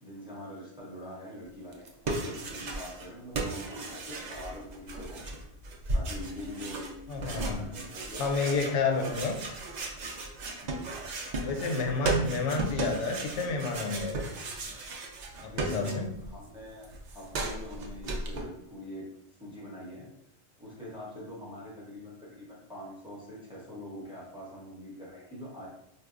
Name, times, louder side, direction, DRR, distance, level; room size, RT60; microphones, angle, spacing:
voice 1, 0.0-5.2 5.9-6.8 7.1-9.1 10.6-10.9 15.5-19.1 19.3-20.1 20.6-25.7, equal, 5° right, -7 dB, 0.8 m, -44 dB
sound 1, 1.7-3.1 3.3-16.3 16.6-18.4, right 2 dB, 55° right, 0.5 m, -35 dB
Keyboard (musical), 6.1-8.8, left 3 dB, 55° left, 0.6 m, -49 dB
voice 2, 7.1-7.6 8.2-9.4 11.3-14.3 15.4-16.1, left 4 dB, 85° left, 2 dB, 0.9 m, -30 dB
4.0 x 2.2 x 2.4 m, 0.77 s
omnidirectional pair, 1.2 m